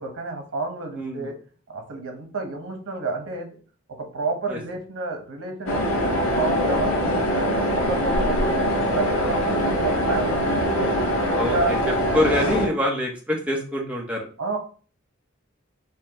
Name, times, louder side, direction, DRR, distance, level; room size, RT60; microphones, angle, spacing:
voice 1, 0.0-1.3 1.7-3.5 4.0-6.0 6.3-10.9 11.4-11.7 14.4-14.6, right 3 dB, 90° right, 4 dB, 1.0 m, -30 dB
voice 2, 0.9-1.3 4.5-4.6 11.4-11.6 11.9-14.3, left 1 dB, 5° right, -1 dB, 0.7 m, -25 dB
sound 1, 5.7-12.7, equal, 90° left, 1.0 m, -23 dB
5.4 x 2.2 x 2.8 m, 0.41 s
head